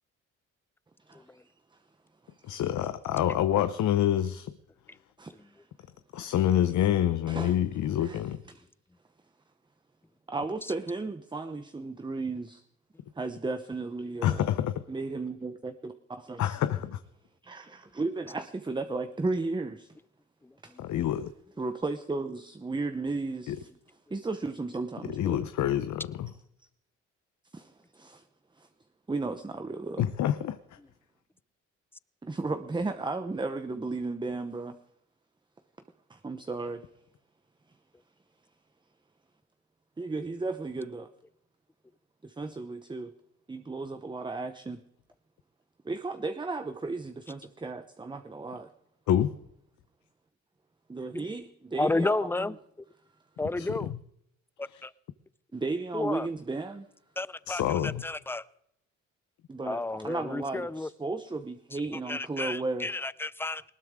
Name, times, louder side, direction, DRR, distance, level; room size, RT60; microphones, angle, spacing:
voice 1, 1.1-1.8 2.2-2.6 5.2-5.7 7.3-7.6 8.0-8.2 8.5-8.6 10.3-12.6 13.1-14.5 14.9-16.6 17.4-20.0 20.6-20.8 21.6-23.7 24.1-25.4 27.5-28.3 28.5-28.7 29.1-30.1 32.2-34.8 36.1-36.8 40.0-41.1 42.2-43.1 43.5-44.8 45.8-48.7 50.9-52.5 55.5-56.9 59.5-62.9, right 3 dB, 15° right, 0.9 m, -35 dB
voice 2, 2.4-4.5 6.1-8.4 14.2-14.8 16.4-17.0 20.8-21.3 23.5-23.6 25.1-26.3 30.0-30.6 49.1-49.4 53.6-54.0 54.7-54.8 57.5-58.1, left 11 dB, 70° left, 0.9 m, -27 dB
voice 3, 51.8-52.6 53.4-53.9 54.6-54.9 55.9-56.3 57.2-58.4 59.7-60.9 62.1-63.7, left 2 dB, 10° left, 0.5 m, -32 dB
20.0 x 18.5 x 3.7 m
cardioid pair, 90°, 30 cm